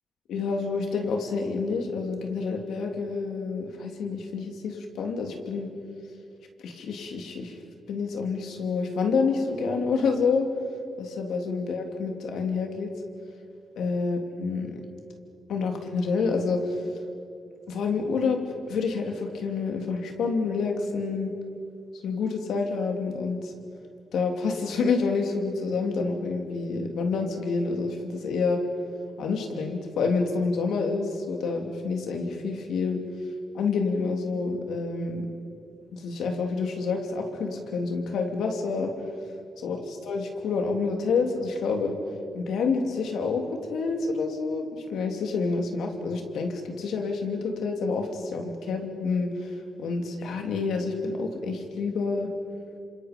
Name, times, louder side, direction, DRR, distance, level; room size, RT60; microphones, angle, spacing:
voice 1, 0.3-5.7 6.6-7.6 7.9-10.5 11.0-12.9 13.8-14.8 15.5-16.8 17.7-18.4 18.7-21.3 22.0-23.5 24.1-28.6 29.2-33.0 33.5-35.3 35.9-38.9 39.6-39.8 40.0-41.9 42.3-43.4 43.7-49.3 49.8-52.3, left 4 dB, 85° left, 3 dB, 2.7 m, -28 dB
27.0 x 26.5 x 5.2 m, 2.5 s
cardioid pair, 80°, 0 cm